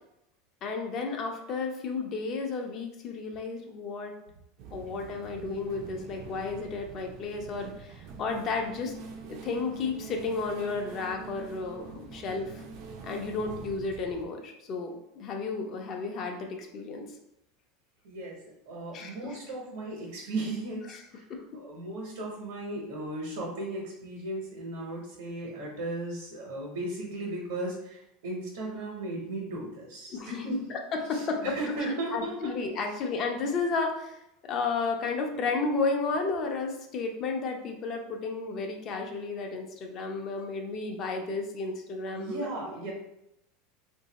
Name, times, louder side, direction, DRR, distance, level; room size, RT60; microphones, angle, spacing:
voice 1, 0.6-4.1 4.7-8.9 9.3-12.6 13.0-17.0 18.9-19.4 20.9-21.0 21.3-21.4 30.1-30.4 30.7-31.4 31.8-42.7, left 4 dB, 35° left, 3 dB, 0.6 m, -33 dB
sound 1, 4.6-14.2, right 5 dB, 55° right, 0.5 m, -45 dB
voice 2, 18.0-21.2 21.5-30.7 31.1-32.5 42.1-42.9, right 2 dB, 85° right, -3 dB, 1.2 m, -36 dB
2.7 x 2.7 x 4.0 m, 0.82 s
supercardioid pair, 155°, 0 cm